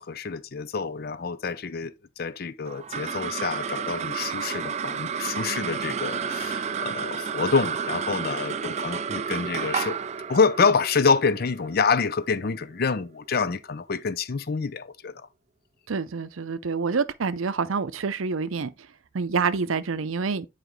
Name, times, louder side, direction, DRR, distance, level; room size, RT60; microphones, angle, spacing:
voice 1, 0.0-10.0 10.3-15.3, left 5 dB, 50° left, 0.5 m, -27 dB
sound 1, 2.7-13.3, right 6 dB, 35° right, 0.4 m, -31 dB
voice 2, 15.9-18.7 19.1-20.5, right 5 dB, 80° right, 0.6 m, -27 dB
9.2 x 4.9 x 3.1 m
head